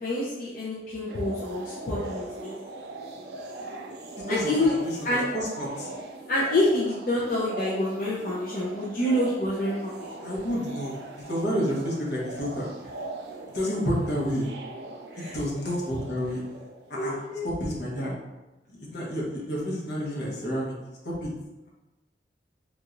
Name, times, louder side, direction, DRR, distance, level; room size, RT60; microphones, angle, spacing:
voice 1, 0.0-2.5 4.3-4.8 5.0-5.3 6.3-10.1 15.1-15.3 17.0-17.4, left 1 dB, 50° left, -7 dB, 0.5 m, -27 dB
sound 1, 1.1-17.3, right 2 dB, 65° right, 0.4 m, -40 dB
voice 2, 4.3-4.7 5.3-5.9 10.2-12.7 13.5-14.5 15.2-16.4 16.9-17.2 17.4-18.1 18.9-20.7 21.0-21.3, equal, 70° left, -5 dB, 1.0 m, -29 dB
3.7 x 2.9 x 2.5 m, 1.1 s
head